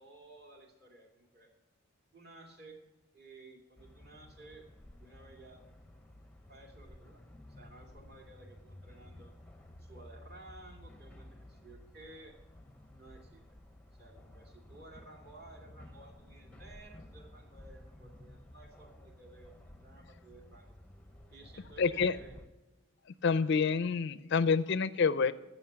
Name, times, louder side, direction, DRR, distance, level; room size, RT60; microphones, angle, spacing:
voice 1, 0.0-1.5 2.1-2.8 3.1-4.7 5.0-5.7 6.5-7.2 7.5-9.3 9.8-12.4 12.9-13.6 13.9-20.7 21.3-22.4, right 2 dB, 45° right, 2 dB, 2.3 m, -55 dB
sound 1, 3.8-22.5, left 1 dB, 5° left, 0.6 m, -54 dB
voice 2, 21.8-22.2 23.2-25.3, left 5 dB, 50° left, 15 dB, 0.4 m, -28 dB
15.0 x 6.4 x 5.7 m, 1.1 s
head